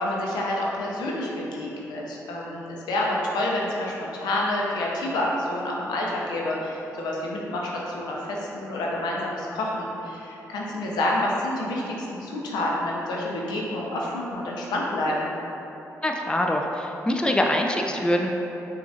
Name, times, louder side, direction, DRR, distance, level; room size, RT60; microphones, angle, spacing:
voice 1, 0.0-15.3, left 1 dB, 80° left, -3 dB, 0.6 m, -28 dB
voice 2, 16.0-18.3, left 1 dB, 10° left, 1 dB, 0.4 m, -24 dB
5.9 x 2.4 x 2.7 m, 3.0 s
supercardioid pair, 45°, 7 cm